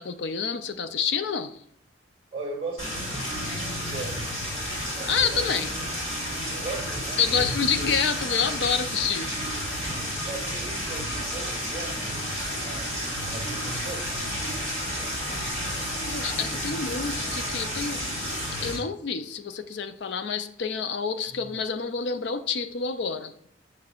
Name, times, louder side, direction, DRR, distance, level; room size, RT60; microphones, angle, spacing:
voice 1, 0.0-1.6 5.1-5.7 7.2-9.3 16.0-18.1 18.6-23.3, left 6 dB, 60° left, 11 dB, 0.4 m, -28 dB
voice 2, 2.3-4.4 4.9-6.1 6.5-7.5 7.8-7.9 10.3-12.1 12.5-12.9 13.3-14.2 21.2-21.5, right 3 dB, 25° right, -6 dB, 1.3 m, -38 dB
sound 1, 2.8-18.8, equal, 35° left, 2.4 m, -31 dB
6.7 x 6.2 x 2.4 m, 0.67 s
head